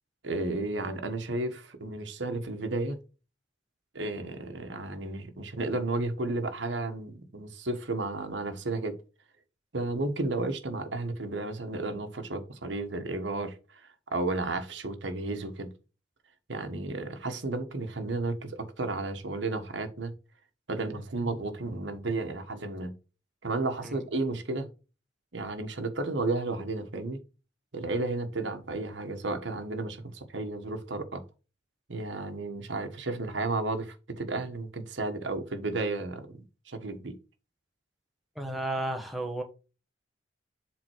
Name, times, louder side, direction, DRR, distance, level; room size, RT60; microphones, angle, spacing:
voice 1, 0.2-3.0 3.9-9.0 9.7-13.8 14.1-15.7 16.5-20.1 20.7-22.9 23.4-24.7 25.3-27.2 27.7-31.2 31.9-37.2, right 2 dB, 80° right, 1.3 m, -33 dB
voice 2, 38.3-39.4, right 1 dB, ahead, 1.1 m, -33 dB
7.7 x 3.7 x 4.6 m
head